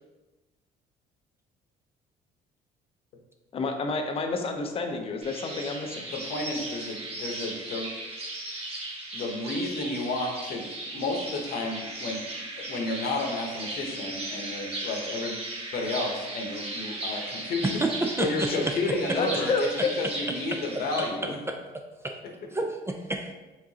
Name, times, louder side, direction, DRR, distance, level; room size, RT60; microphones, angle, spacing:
voice 1, 3.5-6.1 19.2-19.6, left 3 dB, 35° left, 4 dB, 0.6 m, -29 dB
sound 1, 5.2-21.1, right 2 dB, 35° right, 1.3 m, -37 dB
voice 2, 6.1-7.9 9.1-10.6 10.9-12.2 12.6-15.4 15.7-17.8 18.2-21.4, left 2 dB, 65° left, 2 dB, 0.9 m, -31 dB
voice 3, 17.6-19.4 19.8-19.9 20.5-20.8 21.5-21.6 22.0-22.2 22.5-23.3, right 2 dB, 15° right, 3 dB, 0.4 m, -30 dB
4.8 x 3.7 x 2.8 m, 1.1 s
cardioid pair, 110°, 17 cm